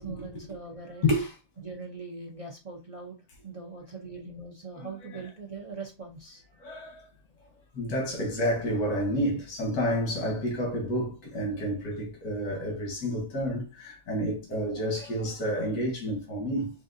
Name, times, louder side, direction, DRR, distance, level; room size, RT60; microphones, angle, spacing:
voice 1, 0.0-1.1 1.6-3.2 3.4-6.5, right 4 dB, 45° right, 0.4 m, -41 dB
voice 2, 1.0-1.3 4.8-5.2 6.6-7.1 7.7-16.7, equal, 85° left, 1.7 m, -30 dB
5.6 x 2.6 x 2.6 m
omnidirectional pair, 1.5 m